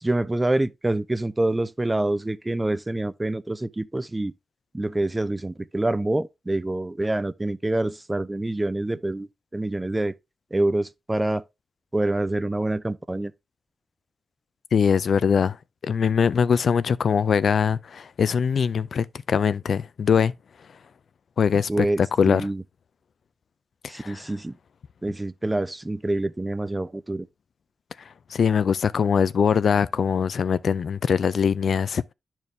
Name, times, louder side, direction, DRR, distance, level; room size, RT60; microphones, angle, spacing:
voice 1, 0.0-4.3 4.7-10.1 10.5-11.4 11.9-13.3 21.7-22.6 23.9-24.6 25.0-27.3, right 2 dB, 20° right, 0.6 m, -26 dB
voice 2, 14.7-15.6 15.8-20.3 21.4-21.8 22.2-22.4 23.9-24.2 28.3-32.1, left 6 dB, 65° left, 0.4 m, -22 dB
10.5 x 4.5 x 3.3 m
cardioid pair, 60°, 0 cm